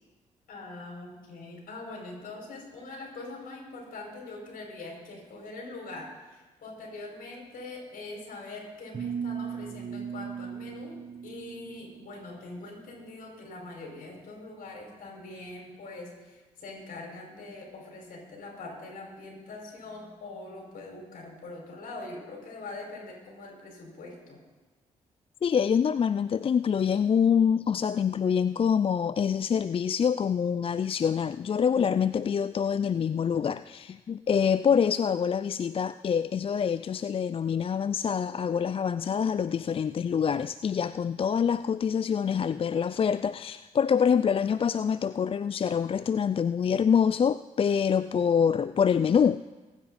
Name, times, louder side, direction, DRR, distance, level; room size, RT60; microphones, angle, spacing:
voice 1, 0.5-24.4, left 2 dB, 65° left, 0 dB, 5.4 m, -43 dB
sound 1, 8.9-12.1, right 7 dB, 40° right, 1.7 m, -37 dB
voice 2, 25.4-49.6, left 7 dB, 35° left, 14 dB, 0.4 m, -26 dB
23.5 x 9.8 x 4.1 m, 1.2 s
hypercardioid pair, 50°, 16 cm